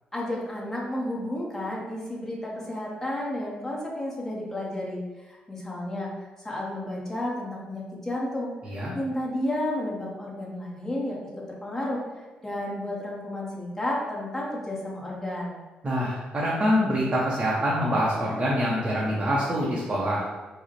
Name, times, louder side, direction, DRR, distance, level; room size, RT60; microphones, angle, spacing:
voice 1, 0.1-6.1 6.4-8.5 8.9-15.6, left 1 dB, 10° left, -4 dB, 0.9 m, -32 dB
voice 2, 15.8-20.2, equal, 30° right, -5 dB, 0.6 m, -25 dB
4.8 x 2.0 x 2.9 m, 1.2 s
cardioid pair, 110°, 3 cm